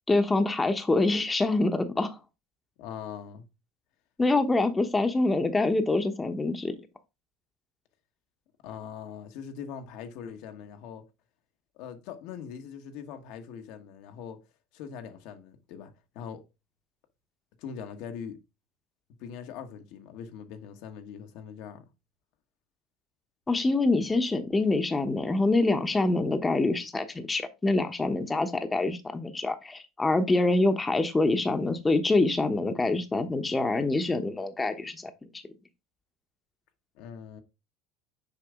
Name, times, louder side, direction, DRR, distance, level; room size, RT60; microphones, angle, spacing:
voice 1, 0.1-2.2 4.2-6.8 23.5-35.1, left 2 dB, 15° left, 1.0 m, -25 dB
voice 2, 2.8-3.5 8.6-11.1 11.7-14.4 14.7-16.4 17.6-18.4 19.1-21.8 36.9-37.4, left 7 dB, 70° left, 1.2 m, -42 dB
6.9 x 4.6 x 3.6 m
hypercardioid pair, 90°, 0 cm